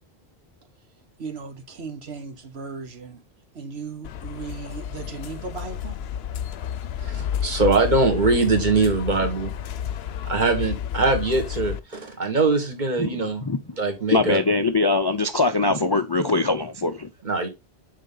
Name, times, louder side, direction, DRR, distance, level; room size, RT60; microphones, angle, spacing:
voice 1, 1.2-3.2 3.5-6.0, right 5 dB, 80° right, 1.5 m, -36 dB
sound 1, 4.0-11.8, left 9 dB, 75° left, 0.9 m, -31 dB
voice 2, 7.0-9.5 10.2-13.4 13.8-14.4 17.2-17.5, right 3 dB, 45° right, 1.8 m, -22 dB
voice 3, 14.1-17.1, left 3 dB, 35° left, 0.4 m, -22 dB
6.5 x 5.1 x 3.8 m
omnidirectional pair, 1.1 m